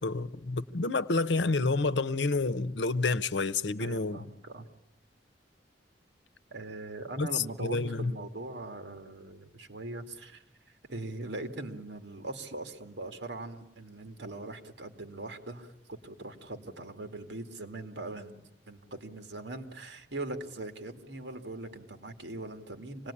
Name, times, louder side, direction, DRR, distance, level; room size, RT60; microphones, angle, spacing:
voice 1, 0.0-4.3 7.2-8.1, left 3 dB, 85° left, 0.9 m, -29 dB
voice 2, 3.8-4.7 6.5-10.4 10.9-23.1, right 2 dB, 85° right, 2.4 m, -41 dB
26.5 x 19.0 x 9.9 m
head